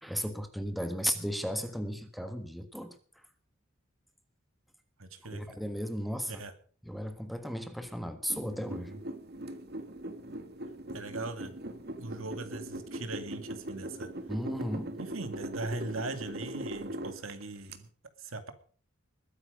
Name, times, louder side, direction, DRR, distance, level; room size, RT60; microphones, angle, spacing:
voice 1, 0.0-2.9 5.2-6.4 6.8-9.0 14.3-15.0, equal, ahead, 1.4 m, -35 dB
voice 2, 5.0-5.6 6.3-6.5 10.9-11.5 12.0-14.1 15.0-17.9 18.2-18.5, right 2 dB, 80° right, 2.4 m, -40 dB
sound 1, 8.3-17.8, right 1 dB, 50° right, 1.6 m, -40 dB
21.0 x 9.8 x 5.2 m
head